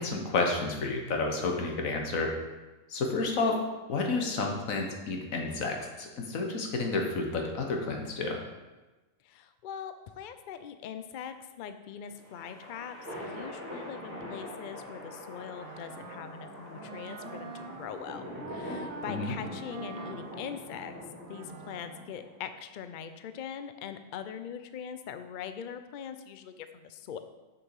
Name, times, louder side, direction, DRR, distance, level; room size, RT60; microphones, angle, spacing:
voice 1, 0.0-2.3 2.9-3.6 3.9-8.4 19.1-19.3, left 3 dB, 85° left, 2 dB, 1.5 m, -30 dB
voice 2, 9.2-18.2 18.5-20.9 21.3-27.2, left 8 dB, 60° left, 10 dB, 0.5 m, -42 dB
sound 1, 12.0-22.5, left 1 dB, 45° right, 2.8 m, -43 dB
Wind instrument woodwind instrument, 15.6-22.1, right 4 dB, 90° right, 1.1 m, -46 dB
6.5 x 6.2 x 4.7 m, 1.1 s
omnidirectional pair, 1.4 m